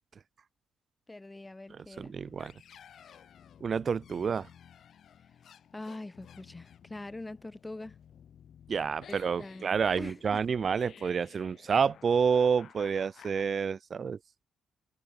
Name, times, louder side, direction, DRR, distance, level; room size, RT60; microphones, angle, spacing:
voice 1, 1.1-2.2 5.7-8.0 9.1-10.7, left 2 dB, 15° left, 5.4 m, -44 dB
voice 2, 2.0-2.5 3.6-4.5 8.7-14.2, right 6 dB, 45° right, 0.3 m, -29 dB
sound 1, 2.2-13.4, left 9 dB, 60° left, 5.8 m, -55 dB
cardioid pair, 90°, 0 cm